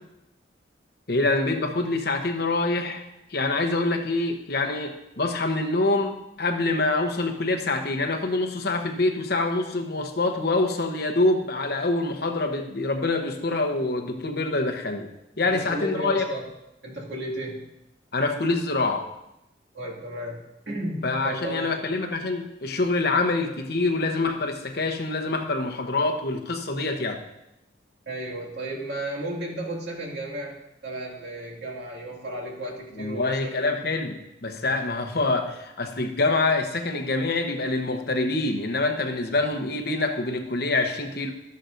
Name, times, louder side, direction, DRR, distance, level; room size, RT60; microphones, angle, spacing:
voice 1, 1.1-3.0 3.3-15.1 15.4-16.2 18.1-19.1 21.0-27.2 33.0-41.3, left 2 dB, 55° left, 5 dB, 1.0 m, -25 dB
voice 2, 15.4-16.4 16.8-17.7 19.7-20.4 20.7-21.8 28.1-33.7, right 1 dB, 60° right, -2 dB, 2.4 m, -34 dB
12.5 x 11.0 x 2.6 m, 0.88 s
head